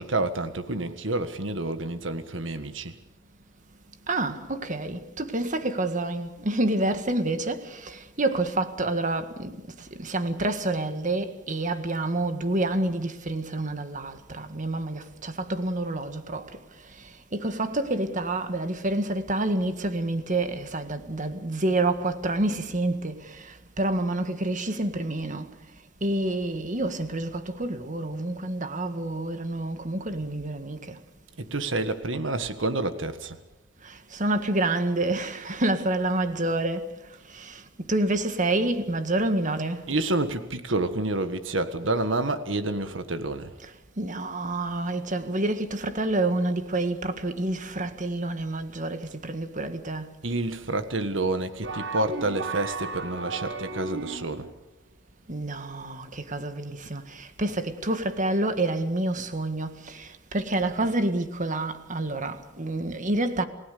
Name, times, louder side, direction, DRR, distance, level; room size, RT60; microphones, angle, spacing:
voice 1, 0.0-3.0 31.4-33.4 39.9-43.5 50.2-54.5, right 2 dB, 80° right, 1.6 m, -29 dB
voice 2, 4.1-16.6 17.3-25.5 26.0-31.0 33.8-36.9 37.3-39.9 43.6-43.7 44.0-50.1 55.3-63.4, right 2 dB, 40° right, 1.8 m, -28 dB
sound 1, 51.6-54.5, right 3 dB, 65° right, 1.8 m, -34 dB
29.0 x 17.5 x 6.8 m
head